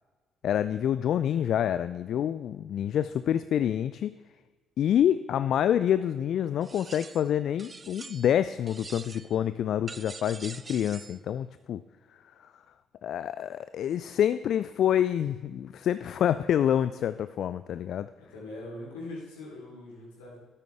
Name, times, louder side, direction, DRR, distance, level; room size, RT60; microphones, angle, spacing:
voice 1, 0.4-4.1 4.8-11.8 12.4-12.5 13.0-18.1, left 10 dB, 55° left, 13 dB, 0.3 m, -27 dB
sound 1, 6.6-7.3 7.6-8.4 8.7-9.4 9.9-11.2, right 4 dB, 30° right, 0.5 m, -45 dB
voice 2, 18.2-20.4, left 2 dB, 75° left, -5 dB, 3.9 m, -42 dB
13.0 x 10.0 x 3.6 m, 1.3 s
figure-of-eight pair, 45°, 0 cm